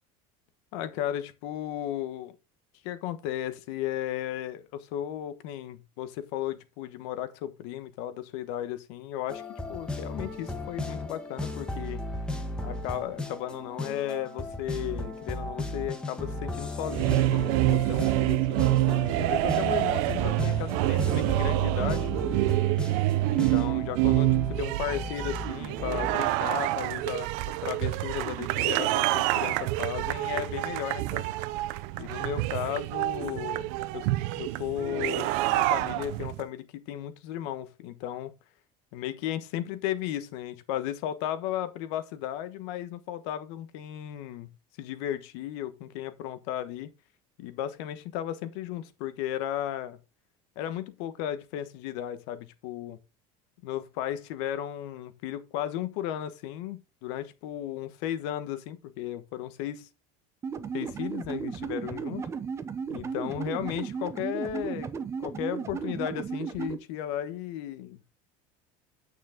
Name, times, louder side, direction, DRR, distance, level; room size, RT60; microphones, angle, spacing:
voice 1, 0.7-2.3 2.8-12.0 12.6-22.1 23.2-31.3 32.0-34.1 34.3-38.3 38.9-46.9 47.4-50.0 50.6-53.0 53.6-59.9 60.7-62.2 62.9-64.9 65.2-68.0, left 11 dB, 65° left, 1.3 m, -35 dB
sound 1, 9.3-26.1, left 2 dB, 5° left, 1.2 m, -36 dB
sound 2, 16.8-36.4, right 17 dB, 60° right, 0.6 m, -27 dB
sound 3, 60.4-66.8, right 6 dB, 15° right, 0.7 m, -35 dB
9.2 x 6.4 x 3.8 m
cardioid pair, 170°, 16 cm